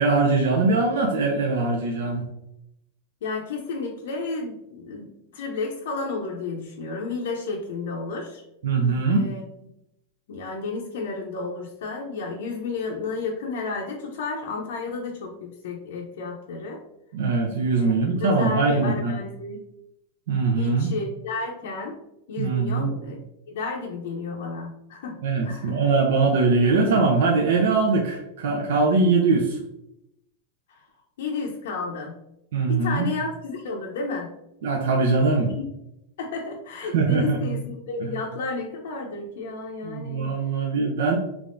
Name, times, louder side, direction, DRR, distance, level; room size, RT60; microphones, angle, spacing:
voice 1, 0.0-2.3 8.6-9.3 17.1-19.1 20.3-20.9 22.4-22.9 25.2-29.6 32.5-33.0 34.6-35.5 36.9-37.5 38.0-38.1 39.8-41.2, right 3 dB, 70° right, 1 dB, 0.6 m, -22 dB
voice 2, 3.2-8.4 9.1-9.4 10.3-16.8 17.8-17.9 18.2-19.6 20.5-22.0 22.3-23.2 23.5-25.2 25.4-25.9 30.7-30.8 31.2-32.2 32.7-34.3 35.6-35.7 36.2-40.6, left 3 dB, 70° left, 0 dB, 0.6 m, -32 dB
3.5 x 3.3 x 2.5 m, 0.84 s
supercardioid pair, 175°, 0 cm